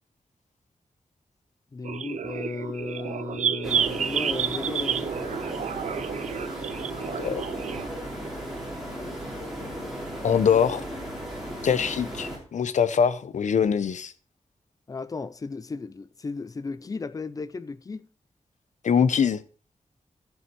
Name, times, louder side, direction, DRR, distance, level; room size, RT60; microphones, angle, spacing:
voice 1, 1.7-5.1 14.9-18.1, left 4 dB, 30° left, 0.5 m, -35 dB
sound 1, 1.8-7.9, right 8 dB, 80° right, 0.5 m, -30 dB
sound 2, 3.6-12.4, equal, ahead, 2.9 m, -35 dB
voice 2, 7.2-7.5 10.2-10.8 11.6-14.1 18.8-19.4, left 7 dB, 85° left, 0.7 m, -23 dB
14.5 x 5.6 x 4.5 m
wide cardioid pair, 170°, 12 cm